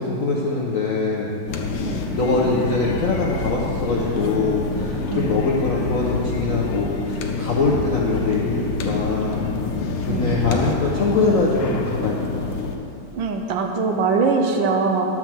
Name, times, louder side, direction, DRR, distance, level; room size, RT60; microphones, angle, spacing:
voice 1, 0.0-1.3 2.1-9.4 10.0-12.5, left 3 dB, 65° left, -3 dB, 0.8 m, -23 dB
sound 1, 1.5-12.8, left 4 dB, 90° left, 1.7 m, -27 dB
voice 2, 13.1-15.1, right 4 dB, 70° right, 4 dB, 1.4 m, -22 dB
11.0 x 4.6 x 7.5 m, 2.8 s
omnidirectional pair, 2.3 m